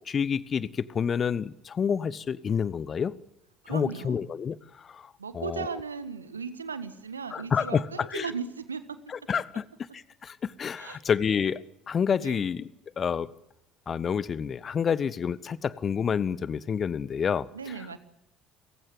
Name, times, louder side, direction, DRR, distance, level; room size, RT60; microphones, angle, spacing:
voice 1, 0.1-3.1 3.7-4.6 4.8-5.1 5.3-5.7 7.3-8.3 9.3-9.7 9.9-11.6 11.9-12.7 13.0-13.3 13.9-17.5, left 7 dB, 35° left, 1.0 m, -28 dB
voice 2, 3.6-4.3 5.2-9.3 10.8-11.0 12.2-12.5 17.5-18.0, right 5 dB, 85° right, 1.5 m, -37 dB
30.0 x 15.5 x 7.9 m
figure-of-eight pair, 55°, 0 cm